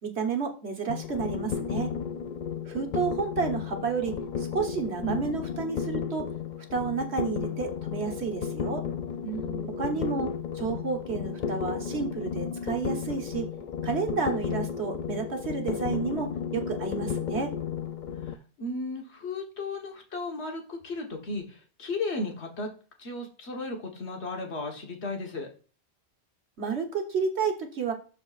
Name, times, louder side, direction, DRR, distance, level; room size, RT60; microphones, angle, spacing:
voice 1, 0.0-1.9 2.7-6.3 6.7-8.8 9.8-13.5 13.8-17.6 26.6-27.9, right 5 dB, 80° right, 4 dB, 1.6 m, -31 dB
sound 1, 0.9-18.4, left 7 dB, 55° left, 0.6 m, -33 dB
voice 2, 9.2-10.1 18.3-22.7 23.0-25.5, left 2 dB, 85° left, 2 dB, 1.6 m, -35 dB
12.0 x 4.3 x 2.5 m, 0.37 s
omnidirectional pair, 1.1 m